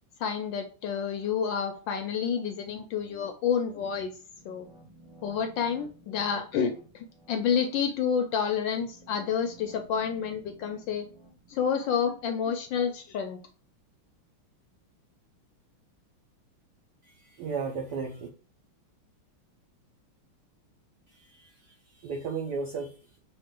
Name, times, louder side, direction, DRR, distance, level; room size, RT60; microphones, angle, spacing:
voice 1, 0.2-4.2 4.4-4.7 5.2-11.1 11.5-13.4, left 7 dB, 75° left, 6 dB, 1.1 m, -29 dB
sound 1, 4.3-13.2, right 2 dB, 35° right, 0.4 m, -56 dB
voice 2, 17.0-18.3 21.1-23.2, right 5 dB, 75° right, 2 dB, 0.9 m, -35 dB
5.6 x 2.5 x 3.7 m, 0.40 s
omnidirectional pair, 2.4 m